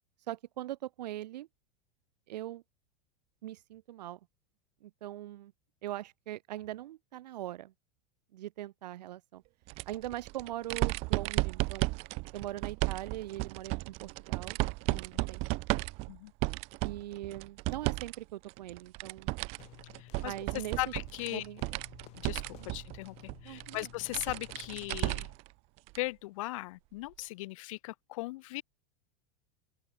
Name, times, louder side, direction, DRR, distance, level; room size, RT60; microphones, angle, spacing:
voice 1, 0.3-1.5 2.3-2.6 3.4-4.2 4.8-5.5 5.8-7.7 8.3-9.4 9.8-11.9 12.3-14.6 14.9-15.4 16.8-19.4 20.2-20.8 21.3-21.6 22.6-22.7 23.4-23.9, right 14 dB, 90° right, 1.7 m, -41 dB
sound 1, 9.7-18.2 18.5-25.5 25.9-26.0 27.2-27.3, right 25 dB, 30° right, 0.7 m, -34 dB
voice 2, 14.9-15.2 16.1-16.3 20.0-20.3 20.8-21.4 22.2-23.1 23.4-25.3 25.9-28.6, left 20 dB, 55° left, 2.8 m, -38 dB
sound 2, 19.6-25.4, left 19 dB, 30° left, 7.0 m, -54 dB
open air
supercardioid pair, 175°, 21 cm